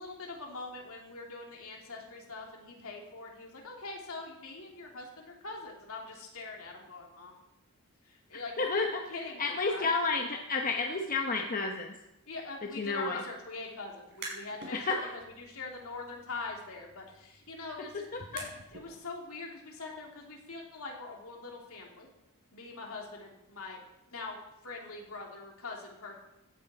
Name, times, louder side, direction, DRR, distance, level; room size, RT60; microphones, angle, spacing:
voice 1, 0.0-7.3 8.0-9.9 12.3-18.0 18.3-18.4 18.7-22.1 22.5-23.8 24.1-26.2, left 3 dB, 70° left, 0 dB, 2.9 m, -43 dB
voice 2, 8.6-9.1 9.4-11.9 12.8-13.2 14.7-15.1 18.1-18.2, left 3 dB, 40° left, 2 dB, 1.0 m, -31 dB
sound 1, 14.1-14.7 15.1-18.9, right 3 dB, 50° right, 4.4 m, -48 dB
16.0 x 9.8 x 4.3 m, 0.91 s
head